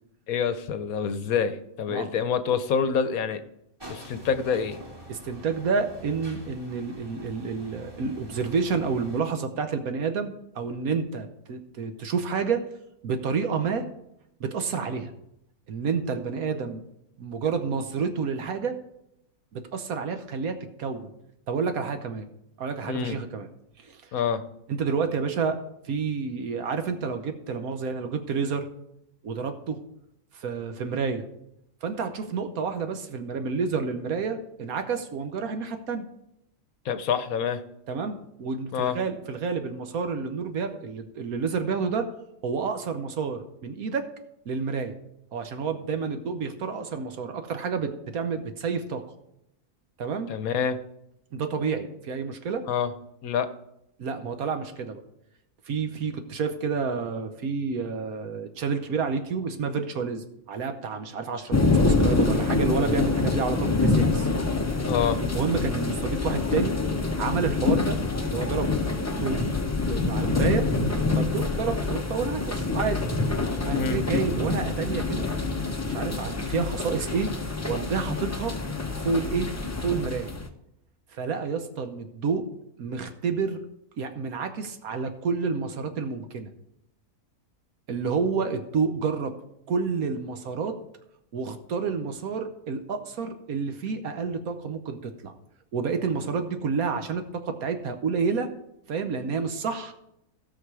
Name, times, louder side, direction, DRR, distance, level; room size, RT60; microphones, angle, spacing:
voice 1, 0.3-3.4 3.9-4.8 22.9-23.2 24.1-24.4 36.9-37.6 38.7-39.0 50.3-50.8 52.7-52.9 53.2-53.5 64.9-65.2 73.7-74.0, left 7 dB, 70° left, 11 dB, 1.1 m, -26 dB
sound 1, 3.8-9.2, equal, 15° right, 1.7 m, -45 dB
voice 2, 5.1-12.7 13.0-13.9 14.4-15.1 15.7-16.8 17.2-18.8 19.5-21.1 21.5-22.3 22.6-23.5 23.8-24.0 24.7-25.6 25.8-28.7 29.2-29.8 30.3-31.2 31.8-36.1 37.9-42.1 42.4-44.1 44.5-44.9 45.3-49.0 50.0-50.3 51.3-52.6 54.0-55.0 55.7-64.3 65.2-66.8 67.2-68.0 68.3-68.7 69.0-69.4 69.9-70.7 71.1-73.1 73.6-75.3 75.8-77.3 77.7-78.5 79.0-79.5 79.8-80.3 81.1-82.4 82.8-83.6 84.0-86.5 87.9-89.3 89.7-90.8 91.3-95.3 95.7-98.5 98.9-99.9, right 5 dB, 70° right, 7 dB, 1.3 m, -29 dB
sound 2, 61.5-80.5, left 3 dB, 25° left, 0.3 m, -26 dB
16.0 x 6.1 x 4.8 m, 0.81 s
omnidirectional pair, 1.6 m